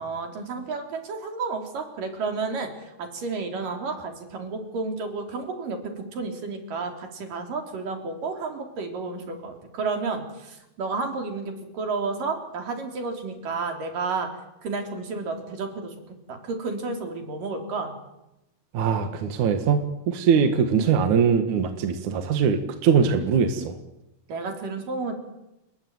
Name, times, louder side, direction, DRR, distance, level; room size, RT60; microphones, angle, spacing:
voice 1, 0.0-14.3 14.6-15.9 16.3-17.9 24.3-25.1, right 4 dB, 85° right, 4 dB, 5.4 m, -31 dB
voice 2, 18.7-19.8 20.1-23.7, right 6 dB, 65° right, 6 dB, 3.1 m, -21 dB
29.5 x 20.5 x 9.6 m, 0.94 s
omnidirectional pair, 3.7 m